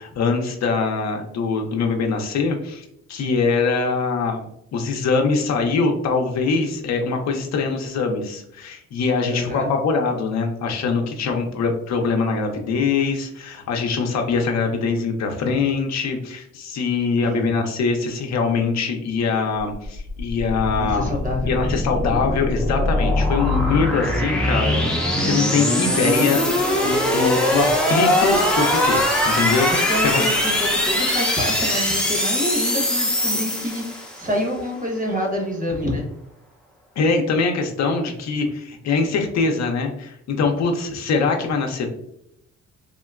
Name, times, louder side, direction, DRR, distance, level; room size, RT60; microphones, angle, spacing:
voice 1, 0.0-21.1 21.4-30.2 37.0-41.9, left 4 dB, 60° left, 3 dB, 0.6 m, -23 dB
voice 2, 9.3-9.7 17.2-17.5 20.7-21.7 23.5-23.8 29.7-36.1, equal, 25° right, 0 dB, 1.0 m, -27 dB
sound 1, 19.8-34.3, left 1 dB, 5° left, 0.6 m, -21 dB
3.7 x 2.1 x 2.3 m, 0.77 s
cardioid pair, 90°, 30 cm